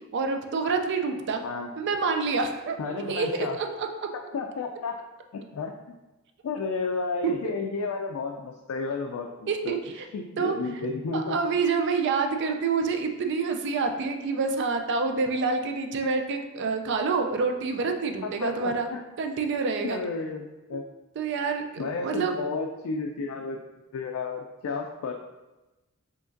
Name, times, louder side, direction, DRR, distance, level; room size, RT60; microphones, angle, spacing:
voice 1, 0.1-1.4 1.8-3.9 7.2-7.3 9.5-10.1 10.4-10.6 11.1-18.9 19.2-20.0 21.2-22.3, right 4 dB, 55° right, 4 dB, 0.3 m, -27 dB
voice 2, 2.8-3.6 4.3-5.0 5.3-5.7 6.4-9.8 10.1-11.4 18.2-19.0 19.8-20.8 21.8-23.6 23.9-25.1, left 4 dB, 75° left, 2 dB, 0.3 m, -32 dB
4.9 x 2.9 x 2.5 m, 1.1 s
head